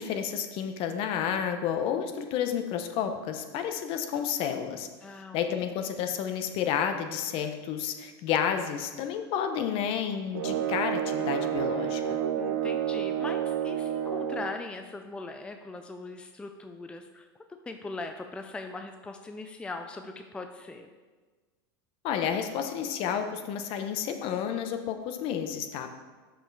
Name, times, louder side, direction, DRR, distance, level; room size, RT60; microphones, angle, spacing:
voice 1, 0.0-4.9 5.3-12.2 22.0-25.9, left 8 dB, 50° left, 7 dB, 0.8 m, -31 dB
voice 2, 5.0-5.7 12.4-17.3 17.7-20.9, left 3 dB, 10° left, 6 dB, 0.4 m, -40 dB
sound 1, 10.3-14.6, right 9 dB, 80° right, 0.7 m, -30 dB
6.2 x 5.6 x 4.7 m, 1.4 s
supercardioid pair, 115°, 12 cm